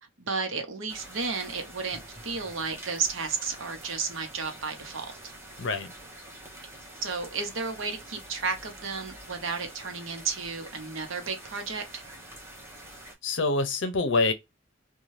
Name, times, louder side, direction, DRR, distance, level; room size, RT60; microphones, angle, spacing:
voice 1, 0.2-5.3 7.0-12.0, right 4 dB, 80° right, 0.8 m, -33 dB
sound 1, 0.9-13.2, right 1 dB, 15° right, 0.8 m, -46 dB
voice 2, 5.6-5.9 13.2-14.3, left 3 dB, 65° left, 0.6 m, -25 dB
2.7 x 2.3 x 3.1 m
head